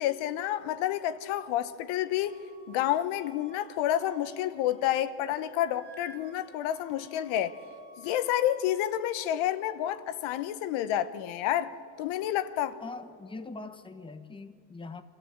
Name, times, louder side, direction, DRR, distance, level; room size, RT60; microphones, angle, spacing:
voice 1, 0.0-2.4 2.7-7.6 8.0-11.7 12.0-12.8, left 12 dB, 70° left, 1.0 m, -29 dB
Wind instrument woodwind instrument, 2.2-5.1 5.4-8.5, right 4 dB, 50° right, 2.0 m, -56 dB
voice 2, 12.8-15.0, left 3 dB, 10° left, 1.0 m, -42 dB
26.0 x 13.5 x 8.0 m
supercardioid pair, 105°, 49 cm